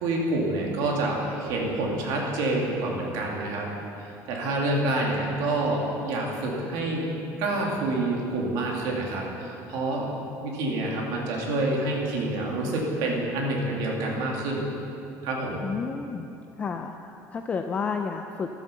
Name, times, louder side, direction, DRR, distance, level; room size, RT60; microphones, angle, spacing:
voice 1, 0.0-3.7 4.0-7.1 7.4-10.1 10.4-14.7 15.2-15.6, right 2 dB, 65° right, -1 dB, 2.5 m, -27 dB
voice 2, 15.6-16.3 16.6-18.5, left 5 dB, 20° left, 5 dB, 0.4 m, -31 dB
12.5 x 8.2 x 6.8 m, 2.8 s
cardioid pair, 180°, 7 cm